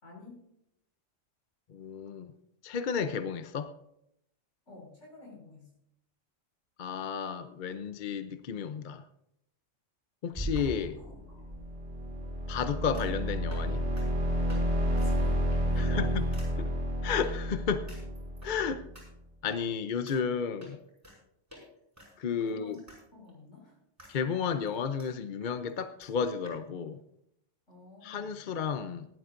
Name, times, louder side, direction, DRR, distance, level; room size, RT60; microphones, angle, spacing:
voice 1, 0.0-0.4 4.7-5.7 14.9-16.3 22.4-23.8 27.7-28.4, left 2 dB, 70° left, -3 dB, 5.5 m, -50 dB
voice 2, 1.7-2.3 2.6-3.7 6.8-9.0 10.2-11.0 12.5-13.8 15.8-16.3 16.6-16.7 17.0-17.9 18.4-18.8 19.4-20.8 22.2-22.8 24.1-27.0 28.0-29.1, left 6 dB, 50° left, 10 dB, 0.7 m, -32 dB
sound 1, 10.3-11.6 12.9-13.2 13.5-13.7 14.0-14.1 14.5-14.6 14.9-15.1 15.5-15.8 16.3-16.5 17.2-17.3 17.9-18.5 18.9-19.0 19.5-19.6 20.1-20.2 20.6-21.2 21.5-21.6 22.0-23.0 23.3-23.4 24.0-24.1 24.4-25.1 25.4-25.5 25.7-25.8 26.0-26.1 26.4-26.6, right 1 dB, 10° right, 5.8 m, -43 dB
sound 2, 11.3-19.0, equal, 50° right, 2.2 m, -31 dB
19.0 x 11.5 x 2.6 m, 0.78 s
omnidirectional pair, 1.3 m